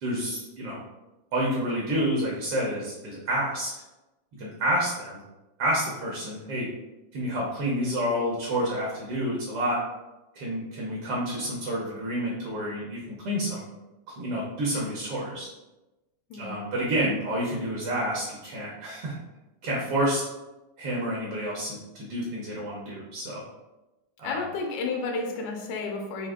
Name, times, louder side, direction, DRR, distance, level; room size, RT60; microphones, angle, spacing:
voice 1, 0.0-0.8 1.3-3.7 4.4-5.2 5.6-6.7 7.1-9.8 10.3-13.6 14.2-15.5 16.4-19.1 19.6-20.2 20.8-23.4 24.2-24.4, equal, 65° right, -3 dB, 1.5 m, -29 dB
voice 2, 24.2-26.3, left 3 dB, 85° left, 2 dB, 2.1 m, -31 dB
5.2 x 2.7 x 3.6 m, 1.0 s
omnidirectional pair, 3.3 m